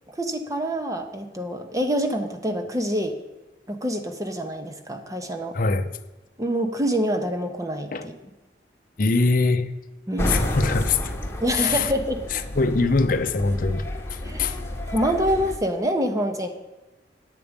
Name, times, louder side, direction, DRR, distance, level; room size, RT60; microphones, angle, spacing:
voice 1, 0.2-3.1 3.7-5.6 6.4-8.1 10.1-10.5 11.4-12.2 14.2-14.6 14.9-16.5, equal, 20° right, 1.0 m, -26 dB
voice 2, 5.5-5.9 7.9-8.1 9.0-9.7 10.2-11.1 11.5-11.9 12.3-14.6, left 3 dB, 50° left, 0.7 m, -23 dB
sound 1, 10.2-15.6, left 1 dB, 15° left, 1.2 m, -30 dB
9.8 x 8.5 x 5.2 m
head